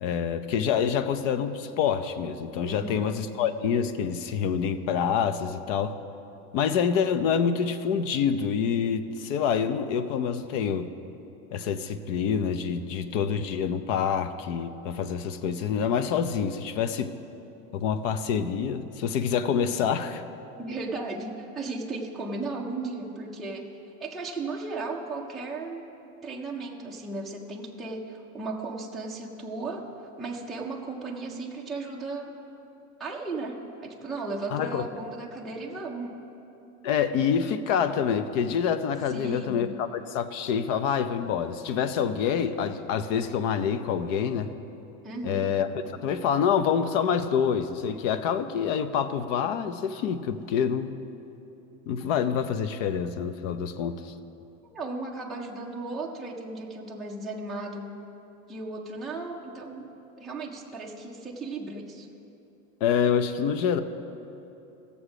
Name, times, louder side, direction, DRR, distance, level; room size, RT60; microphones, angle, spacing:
voice 1, 0.0-5.9 6.5-10.9 11.5-17.1 17.7-20.2 34.5-34.8 36.8-44.5 45.2-45.7 46.0-50.9 51.9-54.1 62.8-63.8, left 7 dB, 60° left, 11 dB, 0.8 m, -26 dB
voice 2, 2.7-3.2 20.6-25.9 26.2-32.4 33.0-36.2 39.1-39.8 45.0-45.5 54.6-57.9 58.5-59.9 60.2-62.1, right 3 dB, ahead, -4 dB, 0.4 m, -36 dB
16.5 x 7.1 x 5.0 m, 2.9 s
supercardioid pair, 150°, 43 cm